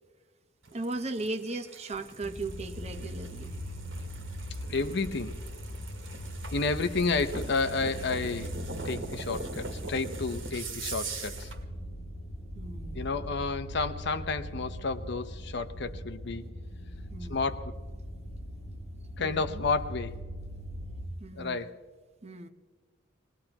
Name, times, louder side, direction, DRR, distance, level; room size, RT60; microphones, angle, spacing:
sound 1, 0.6-11.6, right 3 dB, 75° right, 2.0 m, -42 dB
voice 1, 0.7-3.5 12.5-13.1 17.1-17.4 19.2-19.6 21.2-21.7 22.2-22.5, right 2 dB, 35° right, 8 dB, 0.8 m, -37 dB
sound 2, 2.2-21.1, equal, 45° left, 3.1 m, -40 dB
voice 2, 4.7-5.4 6.5-8.5 8.8-11.5 12.9-16.5 17.3-17.8 19.2-20.1 21.3-21.8, left 4 dB, 65° left, 10 dB, 0.8 m, -31 dB
21.0 x 20.0 x 2.9 m, 1.5 s
head